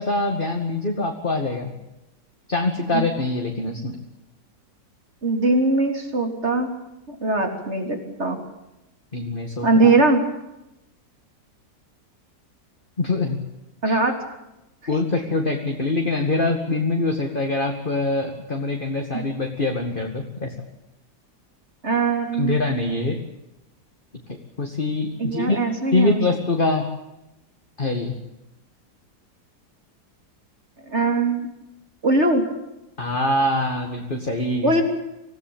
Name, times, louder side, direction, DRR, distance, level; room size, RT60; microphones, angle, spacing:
voice 1, 0.0-1.7 2.5-4.0 9.1-9.9 13.0-13.4 13.9-14.0 14.9-20.5 22.3-23.2 24.6-25.6 25.9-26.9 27.8-28.2 33.0-34.7, left 2 dB, 30° left, 2 dB, 2.3 m, -24 dB
voice 2, 5.2-6.7 7.1-8.4 9.6-10.2 13.8-14.1 21.8-22.6 25.2-26.2 30.9-31.5 32.0-32.4 34.6-34.8, right 2 dB, 35° right, 5 dB, 3.8 m, -21 dB
26.0 x 17.0 x 8.8 m, 0.93 s
omnidirectional pair, 1.9 m